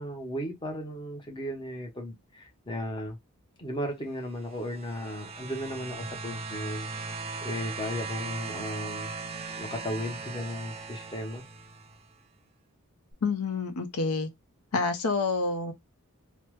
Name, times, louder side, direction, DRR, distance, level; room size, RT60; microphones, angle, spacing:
voice 1, 0.0-3.2 3.6-6.9 7.4-9.1 9.6-11.4, equal, 20° left, 0.7 m, -35 dB
sound 1, 4.3-12.1 13.1-13.2, right 4 dB, 30° right, 0.3 m, -39 dB
voice 2, 13.2-14.3 14.7-15.7, left 4 dB, 80° left, 0.6 m, -28 dB
3.2 x 2.0 x 3.1 m
head